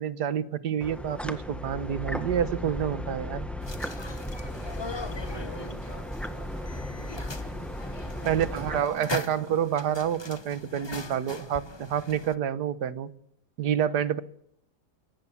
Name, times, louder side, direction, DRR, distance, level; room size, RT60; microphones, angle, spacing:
voice 1, 0.0-3.5 8.3-13.1 13.6-14.2, right 9 dB, 85° right, 16 dB, 1.6 m, -28 dB
sound 1, 0.8-8.8, left 1 dB, ahead, 1.7 m, -36 dB
sound 2, 3.6-12.3, left 3 dB, 20° left, 0.9 m, -40 dB
voice 2, 5.3-7.6 8.2-9.6, right 2 dB, 40° right, 5 dB, 4.0 m, -48 dB
23.5 x 18.0 x 7.1 m, 0.73 s
omnidirectional pair, 1.7 m